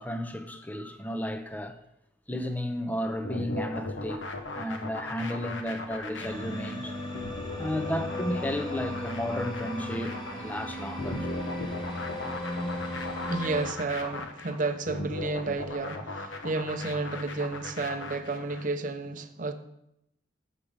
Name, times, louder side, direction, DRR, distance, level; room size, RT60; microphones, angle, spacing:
voice 1, 0.0-1.8 2.3-6.9 7.6-11.3, left 1 dB, 10° left, 0.6 m, -33 dB
sound 1, 3.2-18.7, left 2 dB, 80° left, 1.0 m, -38 dB
sound 2, 6.2-13.7, left 1 dB, 25° left, 1.4 m, -36 dB
voice 2, 13.2-19.5, right 3 dB, 45° right, 0.6 m, -32 dB
7.3 x 6.6 x 5.0 m
head